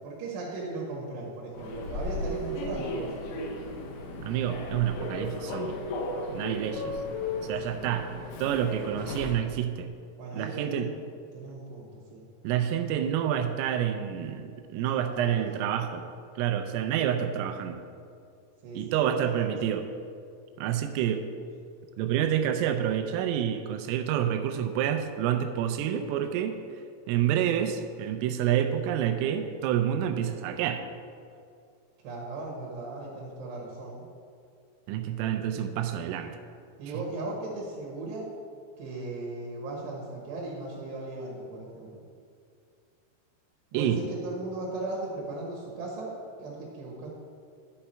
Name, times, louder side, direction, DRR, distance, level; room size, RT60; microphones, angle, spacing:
voice 1, 0.0-3.5 7.6-7.8 10.2-10.9 11.3-12.2 14.8-15.4 18.6-19.7 32.0-34.0 36.8-38.3 38.8-42.0 43.7-47.1, right 2 dB, 70° right, -3 dB, 3.0 m, -37 dB
Human voice / Subway metro underground, 1.5-9.5, left 2 dB, 80° left, 3.5 m, -35 dB
voice 2, 4.2-5.8 6.3-6.9 7.4-8.1 8.4-9.9 10.3-10.9 12.4-16.1 16.4-17.8 18.8-19.9 20.6-21.3 22.0-26.6 27.1-30.8 34.9-36.3 43.7-44.0, right 10 dB, 85° right, 7 dB, 3.2 m, -28 dB
11.0 x 5.8 x 4.3 m, 2.3 s
omnidirectional pair, 5.9 m